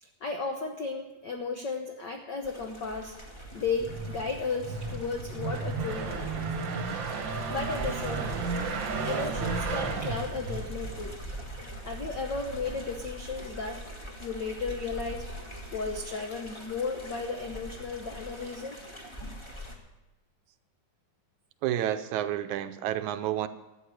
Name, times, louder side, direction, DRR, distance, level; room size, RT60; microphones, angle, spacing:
voice 1, 0.0-3.1 3.5-6.5 7.5-8.5 9.0-11.2 11.8-13.9 14.2-15.3 15.7-18.8, left 4 dB, 80° left, 3 dB, 1.0 m, -34 dB
sound 1, 2.4-19.7, equal, 20° left, 0.7 m, -42 dB
sound 2, 3.5-11.1, right 4 dB, 55° right, 1.5 m, -33 dB
voice 2, 21.6-23.5, right 12 dB, 80° right, 10 dB, 2.0 m, -30 dB
13.5 x 9.1 x 6.4 m, 1.1 s
omnidirectional pair, 3.5 m